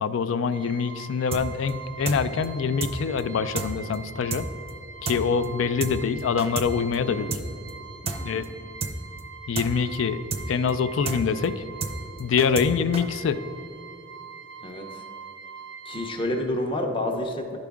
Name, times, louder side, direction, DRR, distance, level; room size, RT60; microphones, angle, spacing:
voice 1, 0.0-4.5 5.0-7.4 8.2-8.5 9.5-11.6 12.2-13.4, left 6 dB, 85° left, 13 dB, 0.4 m, -25 dB
sound 1, 0.5-16.4, right 5 dB, 75° right, 0.6 m, -43 dB
sound 2, 1.3-1.4 1.7-1.8 2.1-2.2 2.4-2.5 2.8-2.9 3.2-3.3 3.6-3.7 3.9-4.0 4.3-4.4 4.7-4.8 5.1-5.2 5.4-5.5 5.8-5.9 6.2-6.7 6.9-7.0 7.3-7.4 7.7-7.8 8.1-8.2 8.4-8.5 8.8-8.9 9.2-9.3 9.6-9.7 9.9-10.0 10.3-10.4 10.7-10.8 11.1-11.2 11.4-11.5 11.8-11.9 12.2-12.7 12.9-13.0, right 4 dB, 30° right, 0.5 m, -30 dB
voice 2, 7.0-7.4 8.0-8.4 14.6-15.0 15.9-17.6, left 1 dB, 25° left, 2 dB, 0.6 m, -30 dB
10.5 x 4.9 x 3.5 m, 2.5 s
head